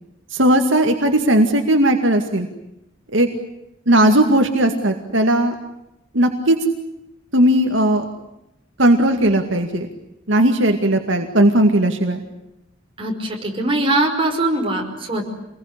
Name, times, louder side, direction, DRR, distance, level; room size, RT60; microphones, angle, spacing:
voice 1, 0.3-2.5 3.1-3.3 3.9-5.5 6.1-6.6 7.3-8.0 8.8-9.9 10.3-12.2, right 1 dB, 70° right, 4 dB, 2.2 m, -16 dB
voice 2, 13.0-15.3, right 2 dB, 30° right, 1 dB, 5.5 m, -21 dB
27.0 x 21.0 x 9.9 m, 0.87 s
head